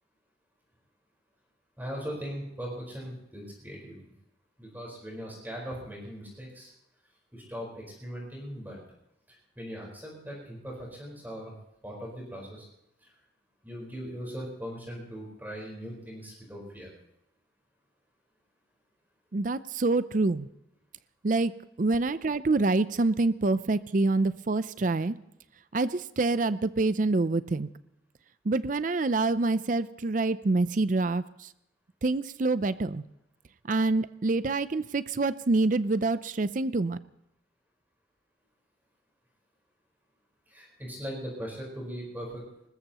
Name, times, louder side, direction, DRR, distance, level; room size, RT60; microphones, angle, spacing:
voice 1, 1.8-4.0 4.6-6.7 7.3-8.8 9.6-11.5 11.8-12.7 13.0-13.1 13.6-16.9 40.5-42.4, equal, 10° right, -3 dB, 4.5 m, -39 dB
voice 2, 19.3-20.5 21.2-21.5 21.8-25.1 25.7-27.7 28.4-31.5 32.0-33.0 33.7-37.0, right 3 dB, 45° right, 15 dB, 0.5 m, -26 dB
21.0 x 20.0 x 3.0 m, 0.81 s
head